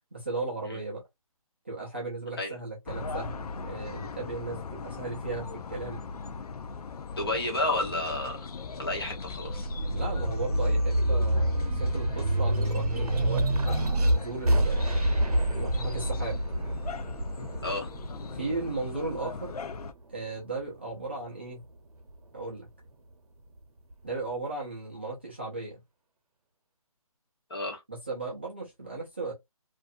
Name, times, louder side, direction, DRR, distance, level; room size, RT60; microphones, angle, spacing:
voice 1, 0.1-1.0 1.6-6.0 9.9-15.2 15.5-16.4 18.3-19.6 20.1-21.6 22.3-22.7 24.0-25.8 27.9-29.3, right 3 dB, 20° right, 0.5 m, -36 dB
sound 1, 2.9-19.9, left 5 dB, 85° left, 0.4 m, -40 dB
voice 2, 7.2-8.5 8.8-9.7 17.6-17.9 27.5-27.8, left 2 dB, 40° left, 1.1 m, -31 dB
sound 2, 8.9-19.7 20.2-21.3, right 1 dB, 85° right, 0.8 m, -27 dB
2.5 x 2.3 x 2.5 m
hypercardioid pair, 170°, 19 cm